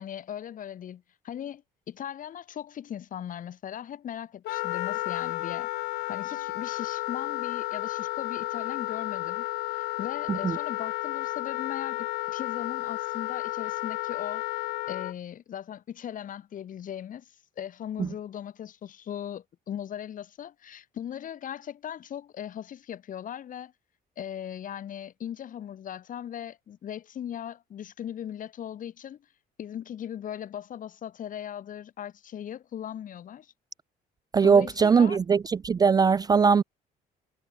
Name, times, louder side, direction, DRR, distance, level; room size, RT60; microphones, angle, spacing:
voice 1, 0.0-5.7 6.1-9.5 9.7-14.4 14.9-23.7 24.2-29.2 29.6-33.5 34.4-35.2, left 10 dB, 55° left, 3.0 m, -39 dB
Wind instrument woodwind instrument, 4.4-15.1, left 18 dB, 75° left, 0.7 m, -32 dB
voice 2, 34.3-35.4 35.6-36.6, right 5 dB, 25° right, 0.3 m, -20 dB
cardioid pair, 110°, 17 cm